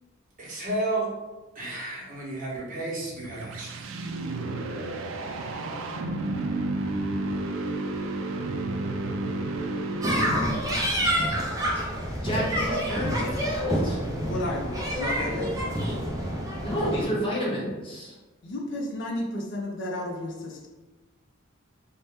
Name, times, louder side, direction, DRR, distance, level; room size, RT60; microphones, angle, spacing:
voice 1, 0.4-1.1 1.5-3.8, right 2 dB, 45° right, -6 dB, 0.9 m, -32 dB
sound 1, 3.0-10.7, right 2 dB, 85° right, 0.3 m, -31 dB
sound 2, 10.0-17.1, equal, 20° right, 0.5 m, -28 dB
voice 2, 12.2-14.0 16.6-18.1, equal, 25° left, -6 dB, 0.9 m, -30 dB
voice 3, 14.2-15.6 18.4-20.7, left 1 dB, 65° left, 0 dB, 0.5 m, -32 dB
2.7 x 2.1 x 3.4 m, 1.2 s
head